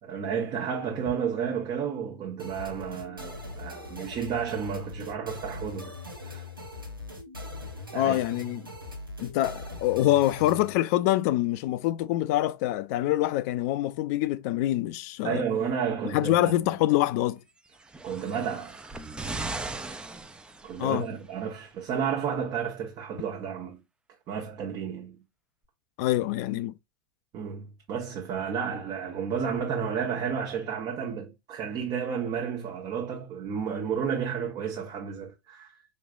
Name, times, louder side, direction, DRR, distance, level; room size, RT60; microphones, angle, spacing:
voice 1, 0.0-5.9 6.2-6.4 7.9-8.2 15.2-16.6 18.0-18.8 20.6-23.8 24.3-25.2 27.3-35.7, right 7 dB, 35° right, 1.0 m, -32 dB
sound 1, 2.4-10.7, left 2 dB, 90° right, 0.8 m, -41 dB
voice 2, 7.9-8.7 9.2-15.4 16.1-17.4 20.8-21.1 26.0-26.7, left 15 dB, 50° left, 0.4 m, -25 dB
sound 2, 17.7-21.1 22.0-22.1, right 3 dB, 10° right, 0.5 m, -38 dB
5.0 x 3.1 x 2.4 m
figure-of-eight pair, 85°, 11 cm